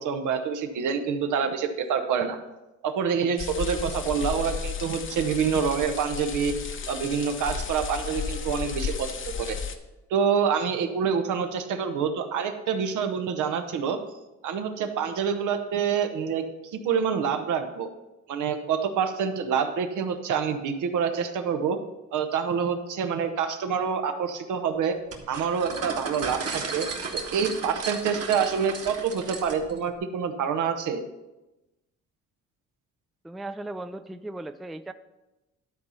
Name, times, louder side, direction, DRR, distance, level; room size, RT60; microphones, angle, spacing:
voice 1, 0.0-2.4 2.8-6.5 6.9-9.1 9.4-9.6 10.1-14.0 14.4-16.4 16.7-17.9 18.3-21.8 22.1-25.0 25.3-26.9 27.1-31.0, right 6 dB, 80° right, 7 dB, 1.0 m, -27 dB
sound 1, 3.4-9.8, left 6 dB, 40° left, 0.8 m, -33 dB
sound 2, 25.1-29.8, right 4 dB, 50° right, 1.7 m, -35 dB
voice 2, 33.2-34.9, right 2 dB, ahead, 11 dB, 0.3 m, -37 dB
12.0 x 4.2 x 5.6 m, 1.0 s
cardioid pair, 90°, 30 cm